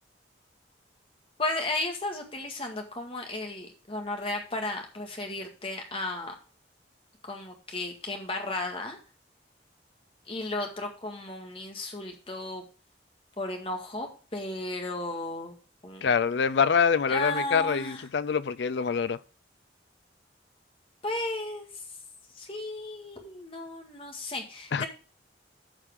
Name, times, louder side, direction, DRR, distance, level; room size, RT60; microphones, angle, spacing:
voice 1, 1.4-6.3 7.2-9.0 10.3-12.6 13.4-15.5 15.8-16.1 17.1-18.1 21.0-21.7 22.3-24.9, left 2 dB, 30° left, 1.8 m, -34 dB
voice 2, 16.0-19.2 24.7-24.8, left 6 dB, 70° left, 0.4 m, -25 dB
14.0 x 4.9 x 3.6 m
head